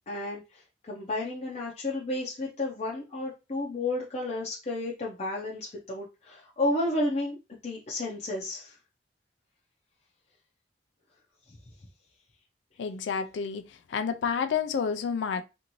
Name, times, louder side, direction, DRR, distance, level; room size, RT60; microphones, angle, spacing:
voice 1, 0.1-7.4 7.6-8.8 11.5-11.6, left 2 dB, 40° left, 0.5 m, -32 dB
voice 2, 12.8-15.4, left 6 dB, 85° left, 0.4 m, -30 dB
2.6 x 2.5 x 3.0 m
head